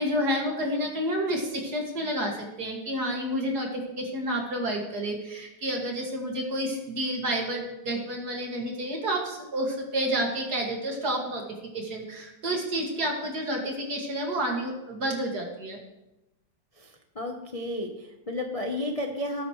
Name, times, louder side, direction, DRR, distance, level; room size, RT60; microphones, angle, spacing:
voice 1, 0.0-2.3 2.6-11.4 11.7-15.8, right 1 dB, 55° right, 0 dB, 2.6 m, -30 dB
voice 2, 16.8-19.5, left 1 dB, 30° left, 2 dB, 0.7 m, -32 dB
19.0 x 9.5 x 3.2 m, 0.96 s
omnidirectional pair, 2.1 m